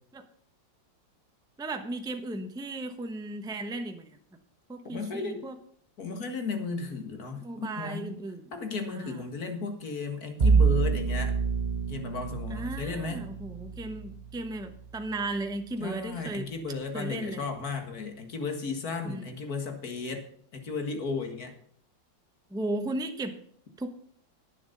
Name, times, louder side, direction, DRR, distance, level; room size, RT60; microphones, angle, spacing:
voice 1, 1.6-4.2 4.7-5.6 7.3-8.5 8.9-9.2 12.5-16.5 16.9-17.4 19.0-19.3 22.5-23.4 23.8-23.9, right 2 dB, 5° right, 6 dB, 0.5 m, -35 dB
voice 2, 4.9-5.4 6.0-8.1 8.5-11.3 11.9-13.2 15.8-20.3 20.5-21.5, left 4 dB, 50° left, 6 dB, 2.1 m, -34 dB
Bowed string instrument, 10.4-15.5, right 5 dB, 90° right, 0.3 m, -28 dB
11.0 x 9.6 x 5.3 m, 0.63 s
omnidirectional pair, 2.1 m